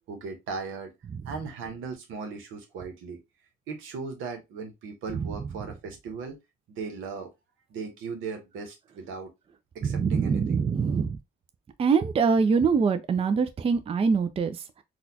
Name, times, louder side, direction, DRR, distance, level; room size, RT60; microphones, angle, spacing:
voice 1, 0.1-0.9 1.2-3.2 3.7-6.4 6.7-7.3 7.7-9.3 9.7-10.6, right 4 dB, 85° right, 1.0 m, -37 dB
voice 2, 9.8-11.2 11.8-14.6, right 5 dB, 30° right, 0.4 m, -24 dB
4.1 x 2.3 x 2.7 m
cardioid pair, 90°, 20 cm